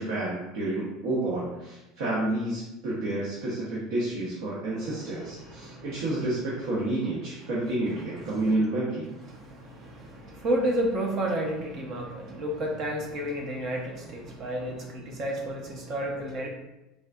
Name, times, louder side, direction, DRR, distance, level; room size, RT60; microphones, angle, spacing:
voice 1, 0.0-9.0, right 2 dB, 80° right, -7 dB, 0.8 m, -30 dB
voice 2, 5.0-6.0 8.1-8.5 9.3-16.5, right 1 dB, 35° right, 1 dB, 0.6 m, -31 dB
3.6 x 2.5 x 2.3 m, 0.98 s
cardioid pair, 165°, 0 cm